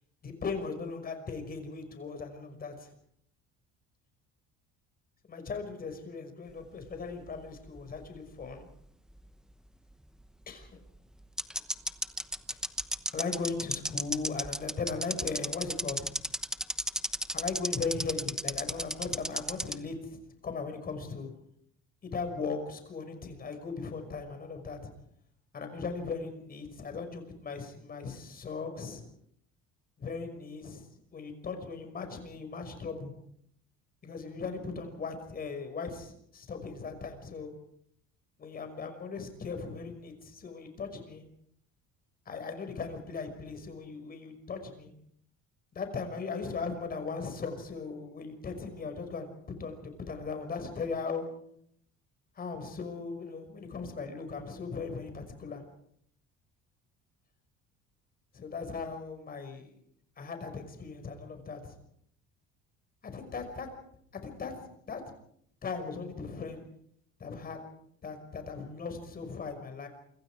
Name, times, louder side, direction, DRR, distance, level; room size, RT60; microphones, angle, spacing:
voice 1, 0.2-2.9 5.3-8.7 10.5-10.8 13.1-16.2 17.3-21.3 22.0-24.9 25.5-29.0 30.0-30.8 31.1-33.1 34.0-37.5 38.4-41.3 42.3-44.9 45.7-51.3 52.3-55.6 58.3-59.7 60.2-61.8 63.0-63.7 64.2-65.0 65.6-66.6 67.2-67.6 68.0-69.9, left 4 dB, 30° left, 7 dB, 5.9 m, -38 dB
sound 1, 6.9-8.4 8.7-8.8 10.6-10.7 11.4-19.8, right 1 dB, ahead, 1.0 m, -32 dB
28.0 x 26.0 x 5.0 m, 0.68 s
cardioid pair, 155°, 30 cm